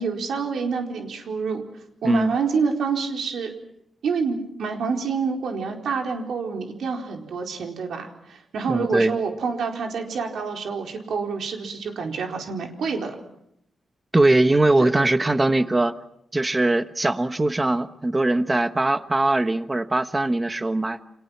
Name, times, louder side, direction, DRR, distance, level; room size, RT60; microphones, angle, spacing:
voice 1, 0.0-1.6 2.0-3.5 4.0-13.2 14.8-14.9, right 5 dB, 90° right, 2 dB, 4.5 m, -27 dB
voice 2, 8.7-9.2 14.1-15.9 16.3-21.0, right 2 dB, 15° right, 11 dB, 1.2 m, -21 dB
30.0 x 27.0 x 6.0 m, 0.75 s
wide cardioid pair, 145°, 0 cm